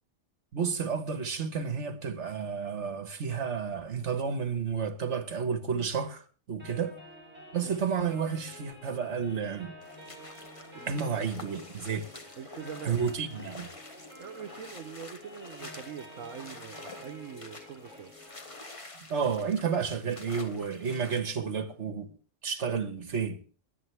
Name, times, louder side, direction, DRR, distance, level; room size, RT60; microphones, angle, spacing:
voice 1, 0.5-6.9 7.5-9.7 10.9-12.1 12.8-13.7 19.1-22.1 22.4-23.4, right 6 dB, 65° right, 1.7 m, -31 dB
sound 1, 6.6-18.6, left 1 dB, 10° right, 6.3 m, -50 dB
sound 2, 9.8-21.2, left 2 dB, 25° left, 1.4 m, -48 dB
voice 2, 10.7-11.2 12.4-13.0 14.2-18.1, right 8 dB, 85° right, 1.3 m, -43 dB
22.0 x 8.5 x 3.4 m
omnidirectional pair, 1.3 m